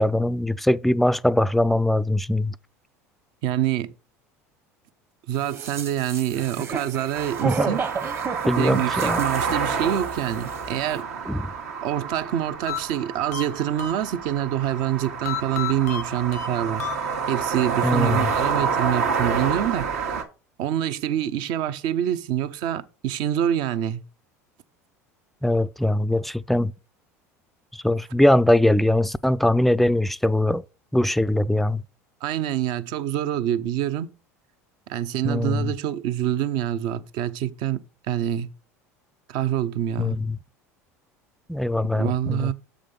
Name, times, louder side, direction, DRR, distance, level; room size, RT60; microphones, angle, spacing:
voice 1, 0.0-2.5 7.4-7.7 8.5-9.2 11.3-11.5 17.8-18.3 25.4-26.7 27.7-30.6 30.9-31.8 35.2-35.7 40.0-40.4 41.5-42.5, left 1 dB, ahead, 0.3 m, -21 dB
voice 2, 3.4-3.9 5.3-7.8 8.6-11.1 11.8-16.9 17.3-19.9 20.6-24.0 32.2-34.1 34.9-38.5 39.3-40.2 41.9-42.5, right 11 dB, 60° right, 0.7 m, -26 dB
sound 1, 5.4-10.2 10.5-10.6, right 6 dB, 30° right, 1.0 m, -32 dB
sound 2, 7.1-20.2, right 5 dB, 80° right, 1.5 m, -28 dB
sound 3, 12.7-14.5 15.2-17.5, left 10 dB, 85° left, 0.7 m, -33 dB
7.1 x 5.1 x 5.2 m
hypercardioid pair, 80°, 8 cm